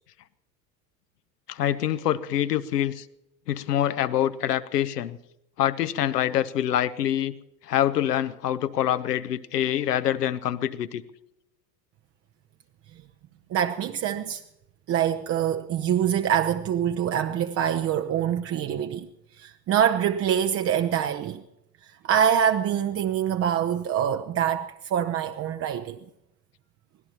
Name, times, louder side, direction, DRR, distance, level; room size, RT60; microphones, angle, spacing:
voice 1, 1.5-3.0 3.5-5.2 5.6-7.3 7.6-11.0, left 11 dB, 70° left, 1.0 m, -25 dB
voice 2, 13.5-14.4 14.9-19.1 19.4-21.4 21.8-26.0, right 9 dB, 30° right, 0.7 m, -25 dB
24.5 x 17.5 x 3.0 m
figure-of-eight pair, 75°, 48 cm